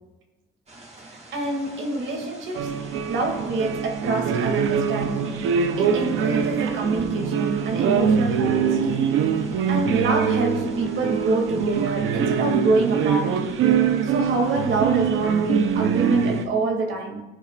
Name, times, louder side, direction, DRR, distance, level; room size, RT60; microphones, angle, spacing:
sound 1, 0.7-16.4, right 2 dB, 35° right, 2.6 m, -47 dB
voice 1, 1.3-9.1 9.7-13.4 14.0-17.2, right 3 dB, 75° right, 2.4 m, -26 dB
sound 2, 2.5-16.5, right 7 dB, 90° right, 0.8 m, -23 dB
19.5 x 7.4 x 2.5 m
cardioid pair, 90°, 20 cm